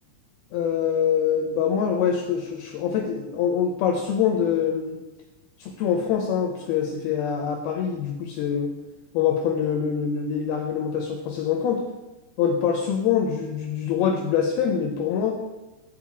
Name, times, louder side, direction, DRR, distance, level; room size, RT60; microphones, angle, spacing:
voice 1, 0.5-5.0 5.6-8.7 9.1-11.8 12.4-15.4, left 7 dB, 85° left, 3 dB, 2.2 m, -24 dB
8.9 x 4.5 x 7.2 m, 1.1 s
omnidirectional pair, 5.2 m